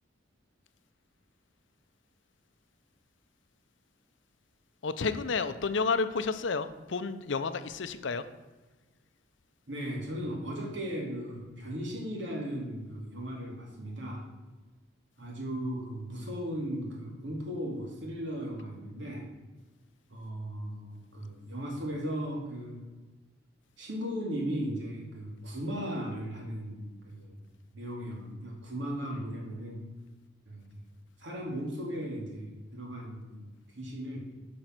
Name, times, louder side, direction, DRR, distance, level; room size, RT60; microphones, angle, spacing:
voice 1, 4.8-8.2, left 4 dB, 75° left, 11 dB, 0.6 m, -31 dB
voice 2, 9.7-14.2 15.2-19.3 20.1-22.8 23.8-27.4 27.7-29.9 30.5-30.7 31.2-34.3, equal, 70° right, -1 dB, 2.4 m, -37 dB
9.2 x 5.4 x 6.0 m, 1.2 s
head